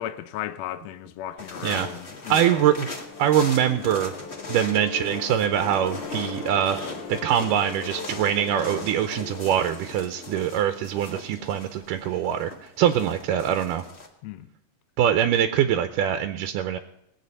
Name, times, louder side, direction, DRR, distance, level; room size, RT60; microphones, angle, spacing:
voice 1, 0.0-2.7 14.2-14.5, left 12 dB, 70° left, 1.7 m, -35 dB
sound 1, 1.4-14.1, left 2 dB, 35° left, 1.0 m, -39 dB
sound 2, 2.1-11.1, left 5 dB, 55° left, 2.0 m, -40 dB
voice 2, 2.3-4.1 4.5-6.8 7.1-13.8 15.0-16.8, right 10 dB, 85° right, 2.3 m, -23 dB
20.0 x 8.1 x 5.4 m
omnidirectional pair, 3.8 m